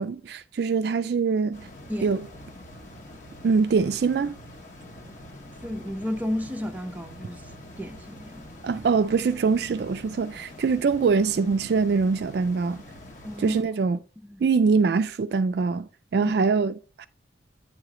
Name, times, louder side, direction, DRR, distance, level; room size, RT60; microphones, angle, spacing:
voice 1, 0.0-1.7 2.0-2.2 3.4-4.3 8.6-12.8 13.4-14.0 14.4-17.1, right 5 dB, 55° right, 0.3 m, -23 dB
sound 1, 1.5-13.6, left 1 dB, 40° left, 1.1 m, -45 dB
voice 2, 5.6-7.4 7.8-8.5 13.2-13.6 14.2-14.4 16.2-16.3, left 1 dB, 10° right, 0.5 m, -32 dB
8.9 x 3.1 x 4.8 m
head